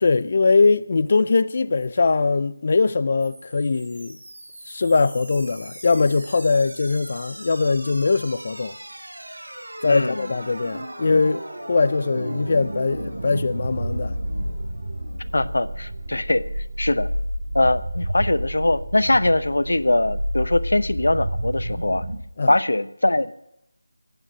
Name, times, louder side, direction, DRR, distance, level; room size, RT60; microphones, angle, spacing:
voice 1, 0.0-4.2 4.7-8.8 9.8-14.2 22.4-22.5, left 4 dB, 45° left, 0.6 m, -21 dB
sound 1, 3.2-22.2, equal, 75° right, 5.0 m, -32 dB
voice 2, 9.8-10.2 15.3-16.4 16.8-17.1 17.5-22.0 22.5-23.3, left 2 dB, 80° left, 0.9 m, -21 dB
15.5 x 9.1 x 9.3 m
figure-of-eight pair, 165°, 0 cm